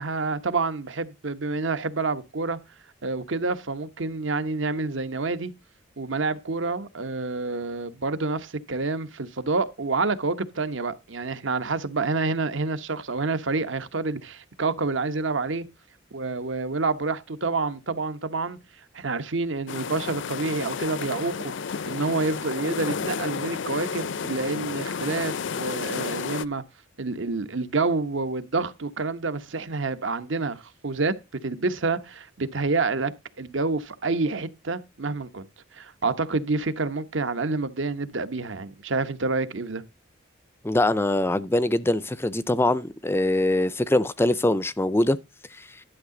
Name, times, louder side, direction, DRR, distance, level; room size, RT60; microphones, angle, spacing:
voice 1, 0.0-2.6 3.0-5.5 6.0-15.7 16.1-18.6 18.9-21.5 21.9-26.6 27.0-31.1 31.4-33.1 33.4-35.5 35.7-39.8, right 3 dB, 65° right, 1.0 m, -28 dB
sound 1, 19.7-26.4, left 5 dB, 60° left, 0.6 m, -31 dB
voice 2, 40.6-45.2 45.5-45.8, left 1 dB, 10° left, 0.4 m, -23 dB
11.5 x 6.6 x 3.8 m
head